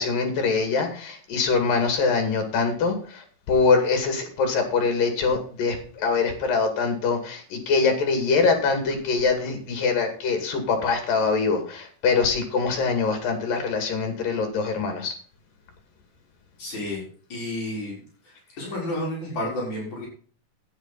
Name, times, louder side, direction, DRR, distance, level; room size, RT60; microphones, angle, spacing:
voice 1, 0.0-15.1, left 4 dB, 75° left, 5 dB, 4.0 m, -23 dB
voice 2, 16.6-17.0 17.3-18.0 18.3-20.1, left 1 dB, 55° left, -4 dB, 5.7 m, -31 dB
12.0 x 9.1 x 4.1 m, 0.43 s
omnidirectional pair, 4.0 m